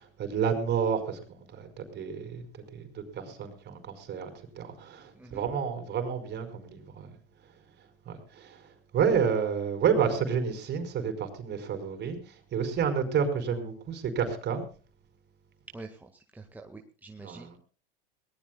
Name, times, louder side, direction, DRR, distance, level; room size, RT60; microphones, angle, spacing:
voice 1, 0.0-2.4 2.7-7.1 8.0-14.6 17.2-17.6, right 7 dB, 35° right, 8 dB, 5.0 m, -30 dB
voice 2, 15.7-17.5, right 3 dB, 5° right, 3 dB, 1.8 m, -46 dB
23.5 x 19.0 x 2.4 m, 0.37 s
hypercardioid pair, 95°, 29 cm